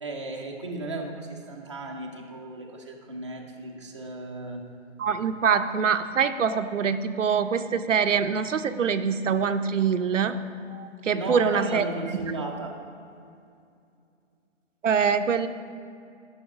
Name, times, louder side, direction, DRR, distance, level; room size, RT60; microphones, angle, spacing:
voice 1, 0.0-4.7 11.1-12.8, right 2 dB, 25° right, -2 dB, 0.6 m, -35 dB
voice 2, 5.0-10.4 10.7-11.8 14.8-15.5, right 6 dB, 75° right, 9 dB, 0.7 m, -24 dB
11.5 x 5.6 x 6.0 m, 2.5 s
hypercardioid pair, 175°, 37 cm